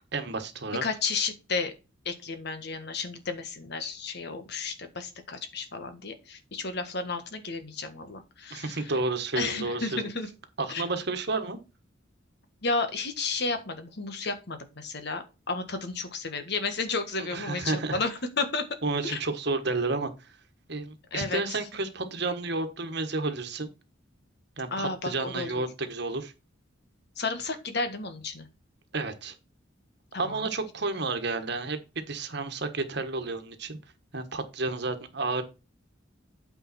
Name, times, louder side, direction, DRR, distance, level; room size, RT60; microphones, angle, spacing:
voice 1, 0.1-0.8 8.5-10.0 10.6-11.6 17.2-18.0 18.8-20.3 20.7-23.7 24.6-26.3 28.9-29.3 30.2-33.8 34.1-35.4, right 3 dB, 55° right, 8 dB, 1.4 m, -31 dB
voice 2, 0.8-1.7 2.0-8.8 9.3-10.3 10.7-10.8 12.6-18.6 19.0-19.2 21.1-21.6 24.7-25.6 27.2-28.5 30.1-30.5, left 4 dB, 55° left, 8 dB, 1.5 m, -32 dB
8.7 x 5.0 x 4.3 m, 0.29 s
head